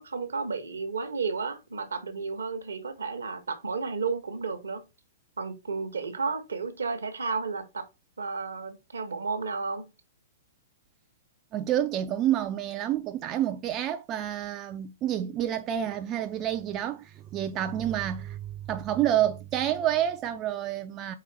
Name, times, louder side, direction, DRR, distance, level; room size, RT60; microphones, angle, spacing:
voice 1, 0.0-4.9 5.4-7.9 8.2-9.9, right 4 dB, 75° right, 0.8 m, -32 dB
voice 2, 11.5-21.1, right 11 dB, 30° right, 0.3 m, -29 dB
4.7 x 3.2 x 3.2 m
figure-of-eight pair, 110°, 0 cm